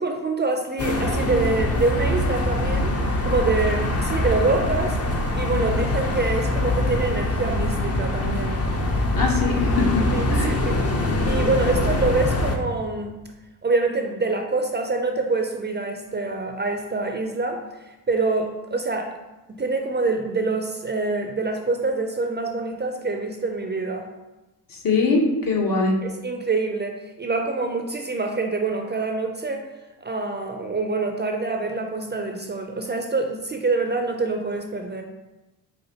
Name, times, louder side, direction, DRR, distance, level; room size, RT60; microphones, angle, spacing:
voice 1, 0.0-3.0 3.2-8.7 10.1-10.7 11.0-13.2 13.6-19.1 19.5-24.1 26.0-29.7 30.0-35.0, right 3 dB, 25° right, 4 dB, 0.5 m, -26 dB
sound 1, 0.8-12.6, left 1 dB, 35° left, 0.7 m, -23 dB
voice 2, 9.2-10.0 10.3-10.6 24.8-26.0, left 3 dB, 55° left, 0 dB, 1.1 m, -22 dB
5.5 x 2.5 x 2.8 m, 1.1 s
supercardioid pair, 45°, 41 cm